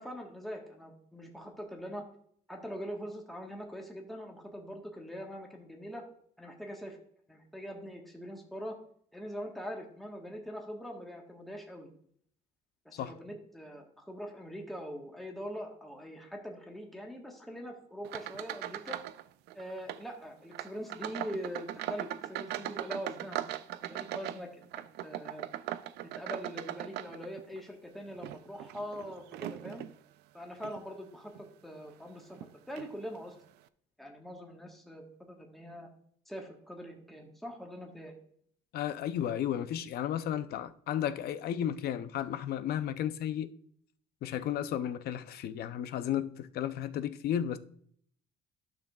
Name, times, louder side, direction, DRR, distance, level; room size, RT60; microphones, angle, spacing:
voice 1, 0.0-2.0 2.5-6.1 6.4-7.0 7.3-8.8 9.1-11.9 12.8-19.0 19.5-23.4 23.8-24.6 25.0-25.5 26.1-29.8 30.3-33.3 34.0-35.9 36.3-38.1, equal, ahead, 1.3 m, -43 dB
sound 1, 18.0-19.2 19.5-20.0 20.5-27.6 28.1-29.9 30.6-30.8 31.4-31.5 32.4-32.5 32.8-32.9, right 13 dB, 80° right, 0.4 m, -39 dB
voice 2, 38.7-43.5 44.2-47.6, left 10 dB, 65° left, 0.6 m, -33 dB
11.5 x 6.0 x 2.3 m
cardioid pair, 110°, 17 cm